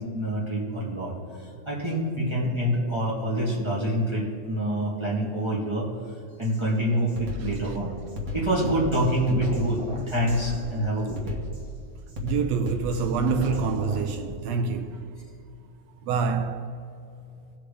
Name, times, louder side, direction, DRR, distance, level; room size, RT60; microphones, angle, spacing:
voice 1, 0.0-5.9 6.4-7.9 8.3-9.8 10.0-11.4, right 1 dB, 10° right, 1.7 m, -26 dB
Drum kit, 6.4-6.6 7.1-14.3, left 1 dB, 60° right, 0.8 m, -34 dB
voice 2, 12.2-15.2 16.1-16.8, right 5 dB, 80° right, 1.5 m, -27 dB
18.0 x 6.1 x 3.4 m
omnidirectional pair, 3.4 m